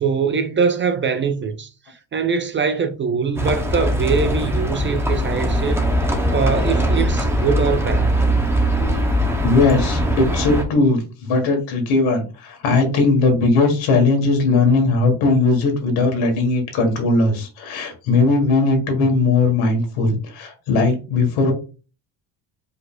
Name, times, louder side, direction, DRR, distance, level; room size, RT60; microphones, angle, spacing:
voice 1, 0.0-8.2, right 5 dB, 30° right, 0.4 m, -23 dB
Livestock farm animals working animals, 3.4-10.6, equal, 5° right, 0.9 m, -20 dB
voice 2, 9.4-21.5, left 3 dB, 85° left, 2.0 m, -18 dB
4.9 x 4.1 x 2.5 m
cardioid pair, 120°, 46 cm